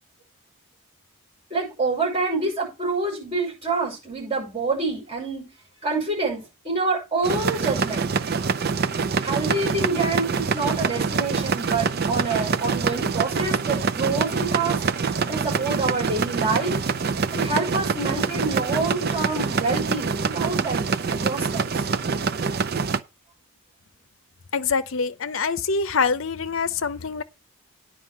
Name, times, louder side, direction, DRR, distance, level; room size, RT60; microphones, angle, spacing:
voice 1, 1.5-5.5 5.8-8.1 9.2-14.8 15.3-16.7 17.3-21.8, right 3 dB, 25° right, 6.7 m, -27 dB
sound 1, 7.2-23.0, right 5 dB, 45° right, 0.5 m, -25 dB
voice 2, 24.5-27.2, left 5 dB, 60° left, 0.7 m, -25 dB
9.6 x 4.9 x 7.2 m
head